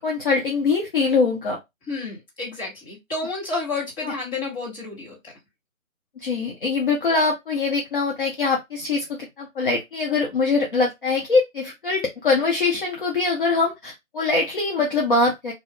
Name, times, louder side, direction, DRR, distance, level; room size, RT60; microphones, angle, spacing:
voice 1, 0.0-1.6 4.0-4.1 6.2-15.5, left 4 dB, 40° left, 0.7 m, -23 dB
voice 2, 1.9-5.3, left 3 dB, 15° left, 1.4 m, -30 dB
2.7 x 2.5 x 3.5 m
hypercardioid pair, 160°, 41 cm